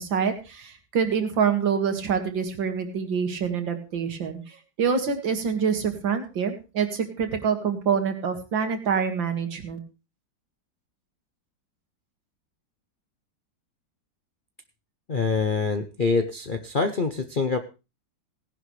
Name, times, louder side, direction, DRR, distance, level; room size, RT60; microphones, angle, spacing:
voice 1, 0.0-9.8, right 6 dB, 80° right, 6 dB, 2.6 m, -26 dB
voice 2, 15.1-17.6, left 4 dB, 50° left, 7 dB, 0.6 m, -25 dB
17.5 x 11.0 x 3.2 m, 0.30 s
omnidirectional pair, 2.0 m